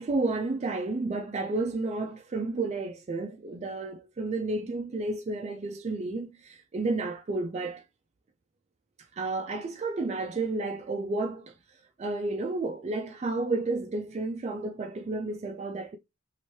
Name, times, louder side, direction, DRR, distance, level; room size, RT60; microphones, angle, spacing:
voice 1, 0.0-7.8 9.2-11.5 12.0-16.0, right 3 dB, 35° right, 0.3 m, -31 dB
3.1 x 2.9 x 3.1 m
head